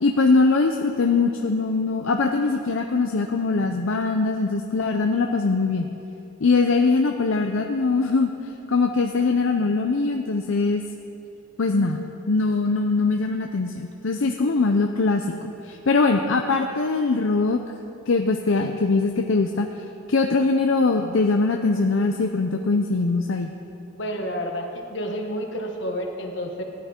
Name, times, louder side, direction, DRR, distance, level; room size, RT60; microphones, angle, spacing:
voice 1, 0.0-5.9 6.4-8.3 8.7-10.8 11.6-12.0 12.3-17.6 18.1-19.7 20.1-23.5, left 3 dB, 80° left, 4 dB, 0.6 m, -22 dB
voice 2, 23.9-26.6, equal, 65° left, 2 dB, 1.4 m, -30 dB
16.0 x 10.5 x 4.4 m, 2.7 s
head